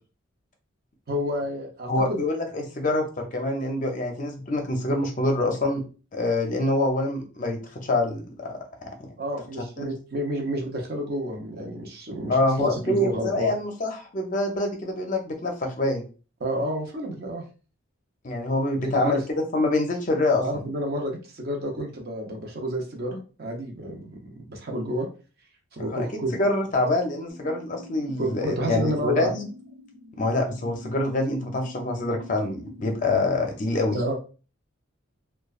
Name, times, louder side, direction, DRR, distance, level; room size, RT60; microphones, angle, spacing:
voice 1, 1.1-2.2 9.2-13.5 16.4-17.4 18.8-19.2 20.4-25.1 25.7-26.4 28.2-29.3 33.9-34.2, equal, 50° right, 2 dB, 0.7 m, -30 dB
voice 2, 1.9-5.8 6.1-8.9 9.8-9.9 12.3-16.0 18.2-20.6 25.9-26.1 26.3-29.5 30.2-34.0, left 2 dB, 40° left, 3 dB, 0.5 m, -26 dB
sound 1, 27.3-33.1, left 2 dB, 85° right, 0.8 m, -45 dB
2.9 x 2.2 x 2.3 m, 0.35 s
head